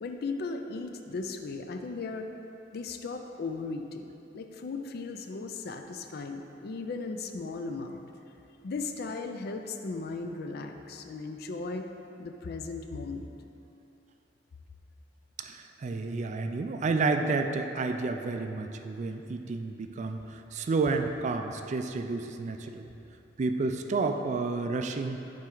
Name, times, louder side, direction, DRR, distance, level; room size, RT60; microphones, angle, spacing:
voice 1, 0.0-2.3 2.7-8.0 8.6-11.9 12.2-13.3, left 3 dB, 60° left, 5 dB, 0.4 m, -37 dB
voice 2, 15.4-22.9 23.4-25.2, right 3 dB, 40° right, 6 dB, 0.3 m, -30 dB
7.4 x 4.4 x 3.8 m, 2.8 s
head